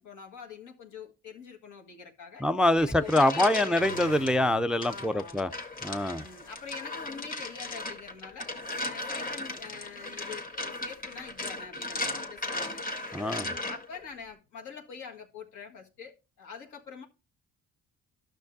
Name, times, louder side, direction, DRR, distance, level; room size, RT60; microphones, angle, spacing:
voice 1, 0.0-2.5 2.8-4.3 4.9-5.6 6.2-8.5 8.8-12.9 13.4-17.1, left 5 dB, 80° left, 1.7 m, -45 dB
voice 2, 2.4-5.5 5.8-6.2 13.1-13.5, left 1 dB, 5° right, 0.3 m, -25 dB
sound 1, 2.8-4.3 4.8-14.0, left 2 dB, 30° left, 1.5 m, -37 dB
sound 2, 3.8-4.7 11.0-11.1, left 3 dB, 60° left, 1.0 m, -44 dB
12.0 x 6.5 x 2.6 m
cardioid pair, 90°, 30 cm